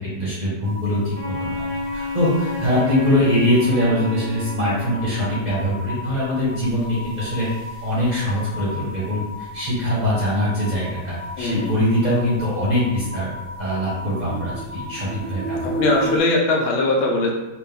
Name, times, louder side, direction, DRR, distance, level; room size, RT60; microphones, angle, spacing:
voice 1, 0.1-1.7 1.9-7.5 7.8-13.3 13.6-15.7, left 1 dB, 30° right, -9 dB, 1.0 m, -22 dB
sound 1, 0.6-16.2, equal, 80° right, 1.3 m, -35 dB
Wind instrument woodwind instrument, 1.1-5.5, left 2 dB, 55° right, 0.9 m, -31 dB
voice 2, 11.4-11.8 15.6-17.3, left 2 dB, 90° left, 0 dB, 1.5 m, -20 dB
4.3 x 2.6 x 3.5 m, 1.0 s
omnidirectional pair, 2.1 m